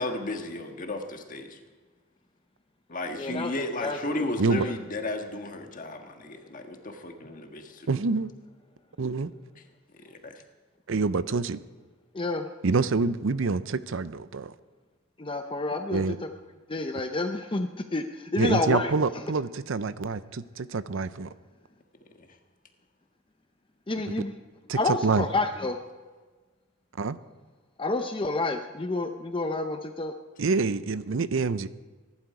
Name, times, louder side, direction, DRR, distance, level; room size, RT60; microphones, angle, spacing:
voice 1, 0.0-1.6 2.9-7.9 10.0-10.4 22.2-22.3, left 2 dB, 40° left, 5 dB, 1.5 m, -34 dB
voice 2, 3.2-3.5 3.8-4.3 4.5-4.7 12.1-12.5 15.2-16.0 16.7-18.9 23.9-24.3 24.7-25.8 27.8-30.1, left 2 dB, 25° left, 6 dB, 0.7 m, -29 dB
voice 3, 7.9-8.3 9.0-9.3 10.9-11.6 12.6-14.5 15.9-16.2 16.9-17.0 18.4-21.3 24.1-24.2 24.7-25.3 27.0-27.2 30.4-31.7, right 4 dB, 65° right, 15 dB, 0.6 m, -27 dB
22.5 x 11.5 x 4.9 m, 1.3 s
head